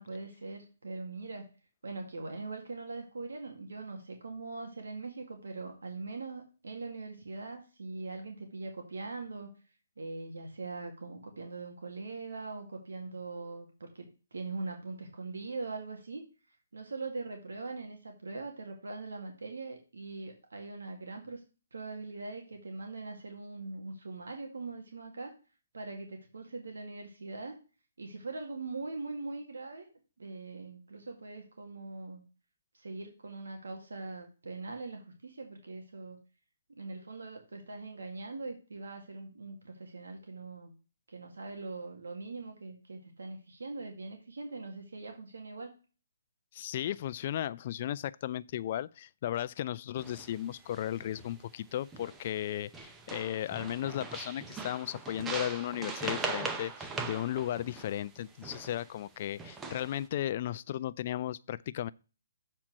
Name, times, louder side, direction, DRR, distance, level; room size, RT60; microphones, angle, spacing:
voice 1, 0.0-1.5 1.8-9.5 10.0-16.2 16.7-21.4 21.7-25.3 25.7-27.6 28.0-29.9 30.2-32.2 32.7-36.2 36.8-40.7 41.1-45.8, right 3 dB, 90° right, 2.0 m, -41 dB
voice 2, 46.5-61.9, left 12 dB, 40° left, 0.3 m, -35 dB
sound 1, 50.0-50.3 50.7-51.4 51.9-52.5 52.7-58.9 59.4-60.0, right 4 dB, 10° right, 0.7 m, -40 dB
7.3 x 4.4 x 6.2 m
hypercardioid pair, 155°, 0 cm